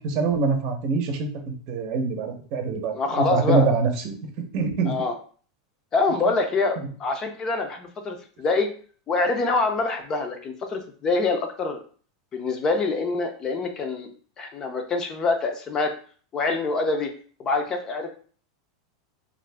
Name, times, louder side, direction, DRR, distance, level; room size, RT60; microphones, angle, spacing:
voice 1, 0.0-4.9, right 4 dB, 50° right, 4 dB, 0.7 m, -25 dB
voice 2, 2.9-3.7 4.9-5.1 5.9-8.7 9.1-11.8 12.3-14.1 14.4-15.9 16.3-17.1 17.4-18.1, left 3 dB, 30° left, 5 dB, 0.5 m, -25 dB
2.6 x 2.5 x 3.3 m, 0.43 s
supercardioid pair, 130°, 2 cm